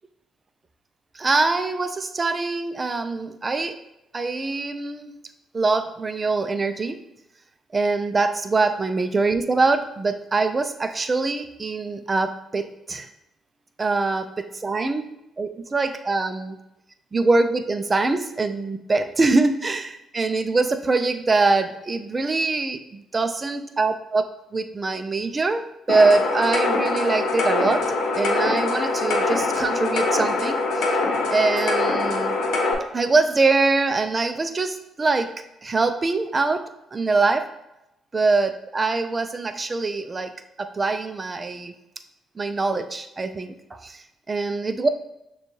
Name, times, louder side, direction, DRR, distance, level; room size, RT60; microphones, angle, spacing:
voice 1, 1.1-3.8 4.1-5.1 5.5-7.0 7.7-13.1 13.8-16.6 17.1-24.2 24.5-31.0 31.3-32.3 32.9-35.3 35.6-37.5 38.1-40.3 40.6-41.7 42.4-44.9, right 3 dB, 30° right, 9 dB, 0.4 m, -23 dB
sound 1, 25.9-32.7, left 3 dB, 85° left, 0.8 m, -23 dB
6.5 x 2.3 x 3.2 m, 0.88 s
cardioid pair, 90°, 0 cm